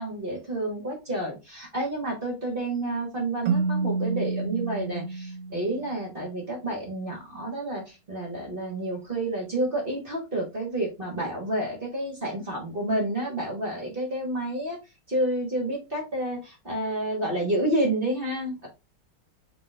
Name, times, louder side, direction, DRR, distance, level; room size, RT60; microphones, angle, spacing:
voice 1, 0.0-14.8 15.1-18.7, right 1 dB, 30° right, -1 dB, 1.3 m, -29 dB
Keyboard (musical), 3.5-6.2, right 4 dB, 65° right, 1.4 m, -29 dB
4.2 x 3.3 x 3.2 m, 0.27 s
omnidirectional pair, 2.2 m